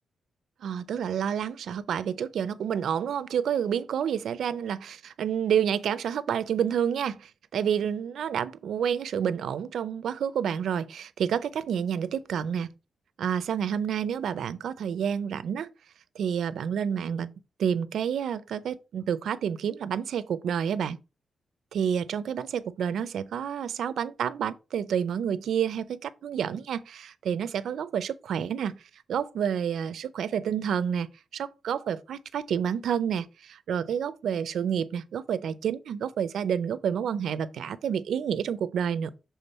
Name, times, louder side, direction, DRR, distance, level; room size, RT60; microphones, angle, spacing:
voice 1, 0.6-12.7 13.2-15.7 16.1-17.3 17.6-21.0 21.7-28.8 29.1-39.1, right 8 dB, 90° right, 0.5 m, -29 dB
7.1 x 3.7 x 4.1 m
wide cardioid pair, 170°, 0 cm